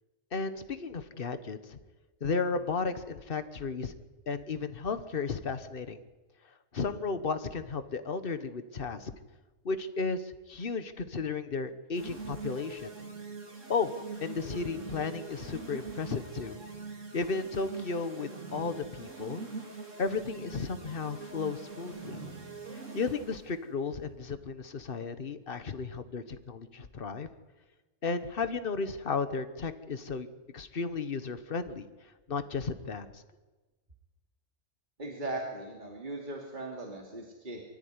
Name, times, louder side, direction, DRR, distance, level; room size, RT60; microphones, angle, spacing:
voice 1, 0.3-1.8 2.2-3.9 4.3-6.0 6.7-9.1 9.6-12.9 13.7-13.9 14.2-16.6 17.1-19.4 20.0-22.2 22.9-27.3 28.0-30.3 30.5-31.9 32.3-33.1, left 4 dB, 50° left, 11 dB, 1.4 m, -34 dB
sound 1, 11.9-23.5, right 4 dB, 85° right, 3.1 m, -43 dB
voice 2, 35.0-37.6, right 2 dB, 40° right, 0 dB, 2.9 m, -38 dB
24.5 x 14.0 x 9.7 m, 1.2 s
omnidirectional pair, 1.3 m